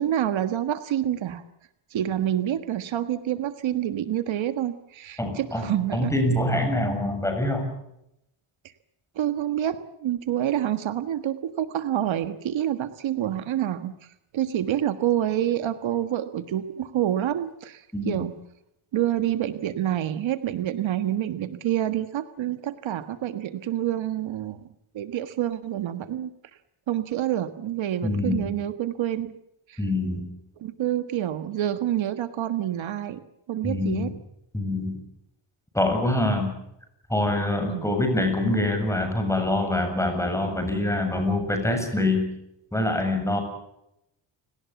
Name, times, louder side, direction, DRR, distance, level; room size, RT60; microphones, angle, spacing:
voice 1, 0.0-1.4 1.9-6.1 9.1-14.0 14.3-18.3 18.9-24.6 24.9-26.3 26.9-29.3 29.7-29.8 30.6-33.2 33.5-34.1 37.7-37.9, right 11 dB, 65° right, 10 dB, 1.6 m, -27 dB
voice 2, 5.2-7.7 17.9-18.2 28.0-28.5 29.8-30.3 33.6-34.1 34.5-35.0 35.7-36.5 37.1-42.3 42.7-43.4, left 1 dB, 5° left, 5 dB, 7.2 m, -25 dB
30.0 x 19.0 x 7.1 m, 0.83 s
cardioid pair, 130°, 49 cm